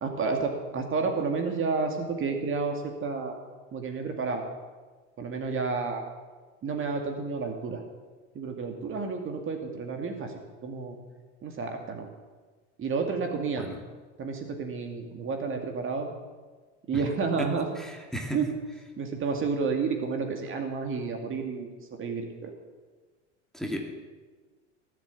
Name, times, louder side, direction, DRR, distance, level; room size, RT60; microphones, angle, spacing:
voice 1, 0.0-3.4 3.7-4.4 5.2-6.0 6.6-7.8 8.3-11.0 11.4-12.1 12.8-13.7 14.2-16.1 16.9-17.7 18.3-18.5 19.0-21.7 22.0-22.5, right 4 dB, 35° right, 4 dB, 2.3 m, -30 dB
voice 2, 17.8-18.4 23.5-23.8, equal, ahead, 1 dB, 2.6 m, -34 dB
18.0 x 7.8 x 8.3 m, 1.4 s
hypercardioid pair, 100°, 36 cm